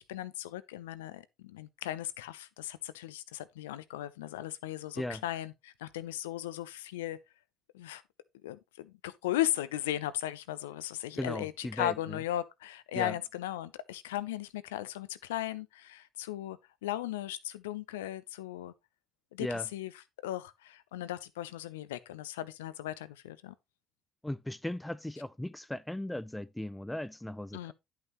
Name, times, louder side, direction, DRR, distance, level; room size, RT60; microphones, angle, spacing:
voice 1, 0.0-7.2 7.7-8.0 8.4-18.7 19.3-19.9 20.2-23.5 27.5-27.7, left 13 dB, 90° left, 0.5 m, -37 dB
voice 2, 11.2-12.2 12.9-13.1 19.4-19.7 24.2-27.7, left 1 dB, 10° left, 0.4 m, -37 dB
10.5 x 5.8 x 3.0 m
hypercardioid pair, 65°, 0 cm